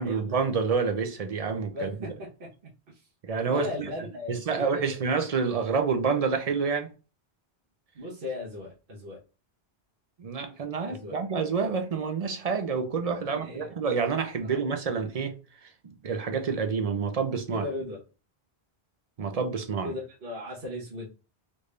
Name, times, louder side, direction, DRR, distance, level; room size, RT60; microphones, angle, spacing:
voice 1, 0.0-2.1 3.2-3.9 4.3-6.9 10.2-15.3 15.6-17.7 19.2-19.9, right 5 dB, 45° right, 0.5 m, -28 dB
voice 2, 1.7-3.0 3.5-4.9 7.9-9.2 10.8-11.2 13.2-13.7 14.4-14.6 17.5-18.0 19.8-21.1, left 2 dB, 60° right, 1.1 m, -37 dB
3.4 x 2.6 x 3.2 m
omnidirectional pair, 1.0 m